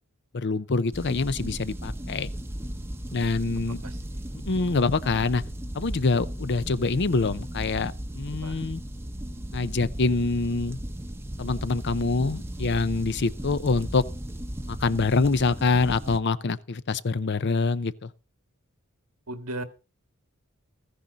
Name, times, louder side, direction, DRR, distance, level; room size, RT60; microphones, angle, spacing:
voice 1, 0.3-2.3 3.1-3.8 4.5-5.4 5.7-8.8 9.5-10.8 11.4-14.0 14.7-18.1, left 3 dB, 50° left, 0.6 m, -25 dB
sound 1, 0.9-16.2, equal, 10° right, 0.8 m, -36 dB
voice 2, 3.8-4.3 8.4-8.6 19.3-19.6, right 1 dB, 90° right, 1.6 m, -37 dB
15.0 x 10.0 x 4.0 m
head